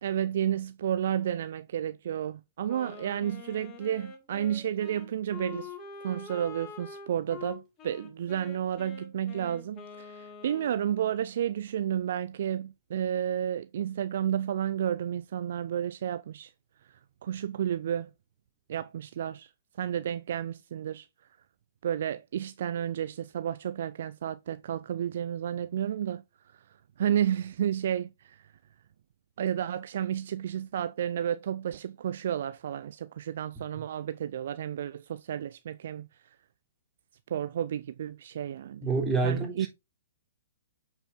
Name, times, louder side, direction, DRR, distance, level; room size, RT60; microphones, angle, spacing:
voice 1, 0.0-5.7 6.0-16.5 17.2-18.1 18.7-19.5 19.8-21.1 21.8-26.2 26.5-26.6 27.0-28.5 29.4-36.1 37.3-38.9 39.2-39.7, right 10 dB, 60° right, 0.4 m, -31 dB
Wind instrument woodwind instrument, 2.7-11.1, left 5 dB, 25° left, 2.1 m, -46 dB
voice 2, 38.8-39.7, right 4 dB, 15° right, 3.4 m, -27 dB
8.6 x 4.6 x 3.7 m
figure-of-eight pair, 120°, 0 cm